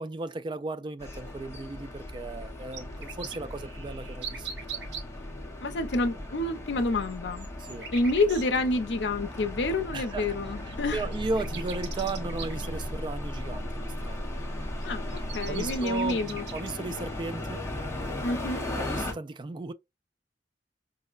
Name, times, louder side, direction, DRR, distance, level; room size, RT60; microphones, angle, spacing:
voice 1, 0.0-4.8 7.6-7.9 9.9-14.3 15.5-16.2 16.5-17.6 18.2-19.7, right 3 dB, 25° right, 0.3 m, -36 dB
sound 1, 1.0-19.1, left 1 dB, 15° left, 0.8 m, -38 dB
sound 2, 2.4-5.0 7.0-8.4 10.3-10.4 10.7-10.8 11.1-12.7 14.8-16.7 18.6-19.0, right 6 dB, 80° right, 1.0 m, -41 dB
voice 2, 5.6-7.5 7.9-11.0 14.8-16.5 18.2-18.7, left 2 dB, 75° left, 0.5 m, -28 dB
sound 3, 10.8-15.8, equal, 55° right, 2.3 m, -37 dB
5.2 x 2.1 x 2.3 m
head